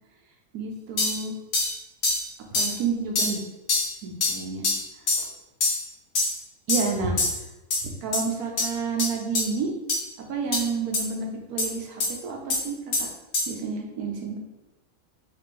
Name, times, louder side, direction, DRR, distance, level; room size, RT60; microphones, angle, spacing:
voice 1, 0.5-1.3 2.5-3.4 4.0-4.7 5.2-5.3 6.7-7.2 7.8-9.7 10.3-12.8 13.5-14.4, right 5 dB, 80° right, 1 dB, 1.3 m, -30 dB
sound 1, 1.0-1.2 1.5-1.7 2.0-2.2 2.5-2.7 3.2-3.4 3.7-3.9 4.2-4.3 4.6-4.8 5.1-5.3 5.6-5.8 6.2-6.4 6.7-6.9 7.2-7.4 7.7-7.8 8.1-8.2 8.6-8.7 9.0-9.1 9.4-9.5 9.9-10.0 10.5-10.6 10.9-11.0 11.6-11.7 12.0-12.1 12.5-12.6 12.9-13.1 13.3-13.5, left 3 dB, 85° left, 1.5 m, -24 dB
4.2 x 3.6 x 3.2 m, 1.0 s
omnidirectional pair, 1.6 m